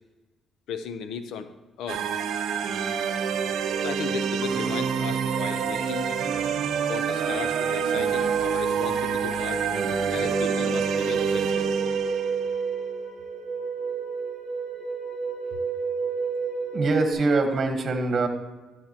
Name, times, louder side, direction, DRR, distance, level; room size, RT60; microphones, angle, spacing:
voice 1, 0.7-1.5 1.8-2.0 3.8-6.4 6.9-9.7 10.1-11.7, left 7 dB, 85° left, 10 dB, 0.7 m, -36 dB
sound 1, 1.9-12.6, right 7 dB, 75° right, 0.6 m, -28 dB
sound 2, 4.9-17.1, right 5 dB, 45° left, 3.0 m, -30 dB
voice 2, 16.7-18.3, right 3 dB, 45° right, 6 dB, 1.3 m, -23 dB
12.5 x 7.1 x 2.9 m, 1.2 s
cardioid pair, 90°, 0 cm